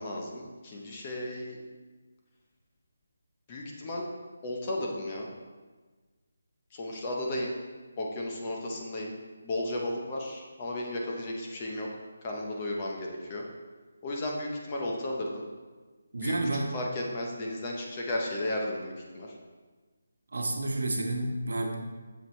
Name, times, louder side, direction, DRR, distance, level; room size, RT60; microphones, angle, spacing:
voice 1, 0.0-1.6 3.5-4.1 4.4-5.3 6.7-7.5 8.0-9.1 9.4-11.9 12.2-13.4 14.0-15.4 16.2-19.4, left 1 dB, 15° left, -1 dB, 0.6 m, -34 dB
voice 2, 16.1-16.7 20.3-21.7, right 2 dB, 70° right, 2 dB, 1.1 m, -30 dB
7.5 x 6.9 x 3.0 m, 1.4 s
hypercardioid pair, 180°, 0 cm